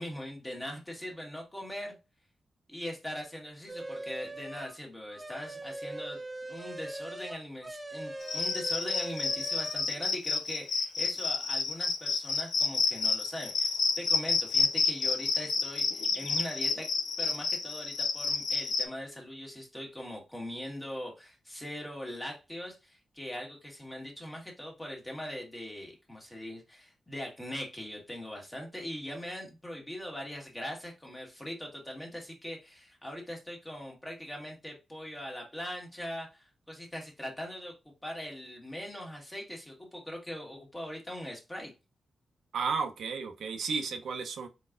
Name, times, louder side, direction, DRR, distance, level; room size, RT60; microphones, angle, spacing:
voice 1, 0.0-2.0 2.7-6.2 6.5-16.9 17.2-37.8 38.0-41.7, equal, 10° left, 1.5 m, -41 dB
sound 1, 3.7-4.8 5.1-9.9, right 2 dB, 10° right, 0.5 m, -41 dB
Cricket, 8.2-18.8, left 4 dB, 65° left, 0.8 m, -29 dB
voice 2, 42.5-44.5, right 5 dB, 80° right, 0.8 m, -33 dB
4.6 x 4.0 x 2.5 m
wide cardioid pair, 170°, 0 cm